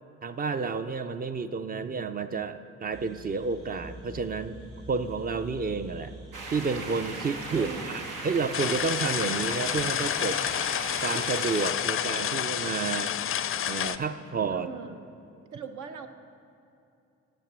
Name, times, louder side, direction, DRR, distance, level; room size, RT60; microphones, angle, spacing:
voice 1, 0.2-4.6 4.9-6.1 6.5-10.4 11.0-13.1 13.7-14.7, right 4 dB, 30° right, 11 dB, 0.4 m, -30 dB
sound 1, 2.9-7.9, equal, 45° right, 2.5 m, -46 dB
sound 2, 6.3-11.7, right 3 dB, 90° right, 1.4 m, -38 dB
voice 2, 7.5-8.0 14.5-15.0 15.5-16.1, right 7 dB, 75° right, 7 dB, 0.8 m, -40 dB
Soft Rain, 8.5-14.0, left 10 dB, 45° left, 0.4 m, -29 dB
8.9 x 6.0 x 7.5 m, 2.7 s
cardioid pair, 90°, 30 cm